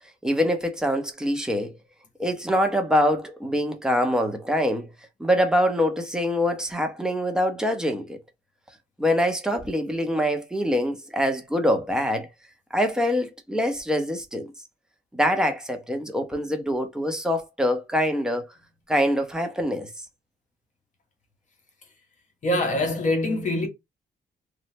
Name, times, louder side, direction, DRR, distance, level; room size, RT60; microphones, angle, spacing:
voice 1, 0.2-1.8 2.2-4.9 5.2-8.2 9.0-12.3 12.7-14.5 15.1-18.5 18.9-19.9, equal, 5° right, 0.7 m, -24 dB
voice 2, 22.4-23.7, left 1 dB, 40° left, 1.0 m, -24 dB
3.1 x 2.0 x 2.7 m
cardioid pair, 140°, 18 cm